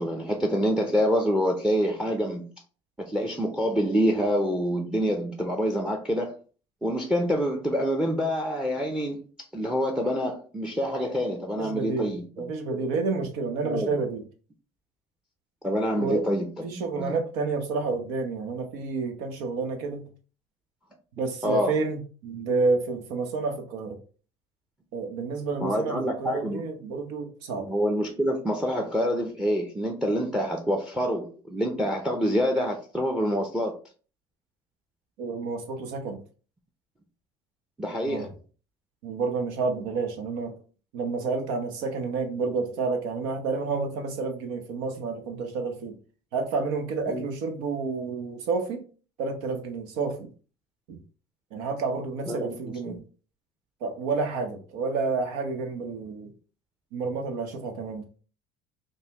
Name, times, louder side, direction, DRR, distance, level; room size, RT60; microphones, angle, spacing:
voice 1, 0.0-2.5 3.0-6.3 6.8-9.2 9.5-12.9 13.6-13.9 15.6-17.2 21.4-21.7 25.6-26.6 27.6-33.8 37.8-38.3 47.1-47.2 52.3-53.0, equal, 5° right, 0.6 m, -27 dB
voice 2, 11.6-14.2 16.0-16.2 16.6-20.0 21.2-24.0 24.9-27.7 35.2-36.2 38.1-38.3 39.0-40.5 40.9-46.0 46.3-48.8 49.2-50.3 50.9-51.0 51.5-53.0 53.8-56.3 56.9-58.0, right 4 dB, 90° right, 0.9 m, -30 dB
5.3 x 2.1 x 2.9 m
cardioid pair, 115°, 12 cm